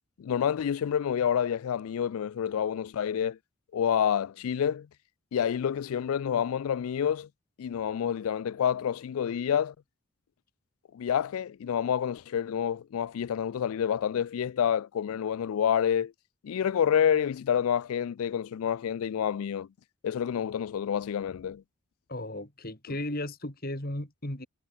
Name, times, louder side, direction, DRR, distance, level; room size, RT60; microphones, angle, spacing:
voice 1, 0.2-3.4 3.7-4.9 5.3-7.3 7.6-9.7 10.9-16.1 16.4-19.7 20.0-21.6, left 8 dB, 80° left, 0.3 m, -28 dB
voice 2, 22.1-24.5, left 1 dB, 40° left, 3.1 m, -35 dB
head